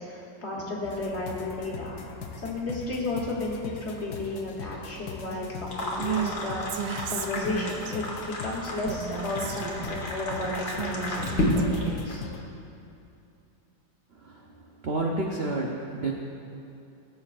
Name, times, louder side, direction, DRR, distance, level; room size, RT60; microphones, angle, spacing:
voice 1, 0.0-2.0 2.4-8.0 8.4-12.2, left 2 dB, 40° left, -3 dB, 1.4 m, -33 dB
sound 1, 0.8-12.4, left 5 dB, 65° left, 1.1 m, -41 dB
sound 2, 5.7-12.1, left 1 dB, 90° left, 2.1 m, -32 dB
Female speech woman speaking, 6.0-6.3 6.7-8.0 8.9-10.0 10.4-12.1, right 8 dB, 85° right, 1.3 m, -34 dB
voice 2, 14.1-14.5 14.8-16.1, right 2 dB, 60° right, -1 dB, 0.6 m, -30 dB
17.5 x 7.4 x 2.5 m, 2.7 s
omnidirectional pair, 1.9 m